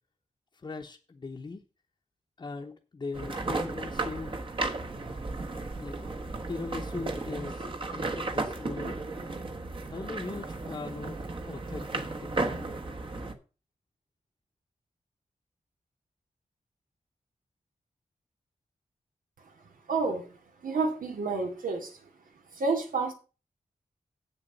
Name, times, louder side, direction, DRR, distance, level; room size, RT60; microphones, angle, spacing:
voice 1, 0.6-1.6 2.4-4.3 5.8-5.9 6.5-9.0 9.9-12.8, left 3 dB, 35° left, 0.9 m, -40 dB
sound 1, 3.1-13.3, right 3 dB, 40° right, 1.2 m, -34 dB
voice 2, 19.9-20.3 20.6-22.0 22.5-23.1, right 4 dB, 90° right, 2.4 m, -29 dB
8.1 x 7.0 x 6.7 m
wide cardioid pair, 145°, 14 cm